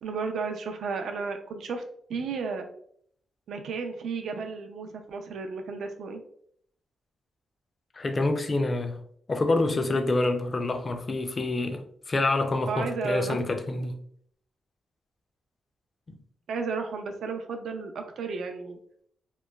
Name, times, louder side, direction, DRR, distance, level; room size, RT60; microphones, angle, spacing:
voice 1, 0.0-1.8 2.1-2.7 3.5-6.2 12.7-13.9 16.5-18.8, right 4 dB, 75° right, 0.4 m, -33 dB
voice 2, 7.9-9.0 9.3-14.0 16.1-16.2, left 2 dB, 40° left, 0.4 m, -27 dB
2.9 x 2.1 x 2.2 m
cardioid pair, 65°, 0 cm